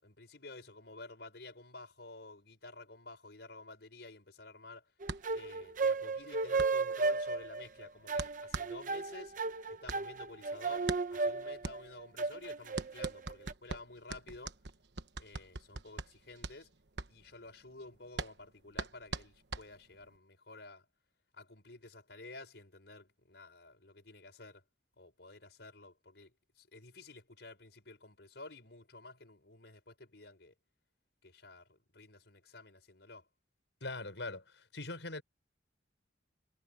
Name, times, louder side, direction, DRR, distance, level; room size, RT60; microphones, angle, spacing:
voice 1, 0.0-4.9 5.3-9.3 9.7-14.6 15.2-16.7 17.1-20.9 21.3-24.6 25.0-30.5 31.2-33.3, left 2 dB, 70° left, 6.2 m, -52 dB
sound 1, 5.0-13.5, right 3 dB, 50° right, 0.8 m, -34 dB
sound 2, 5.0-20.2, right 3 dB, 70° right, 1.2 m, -44 dB
voice 2, 33.8-35.2, left 2 dB, 85° left, 6.3 m, -41 dB
head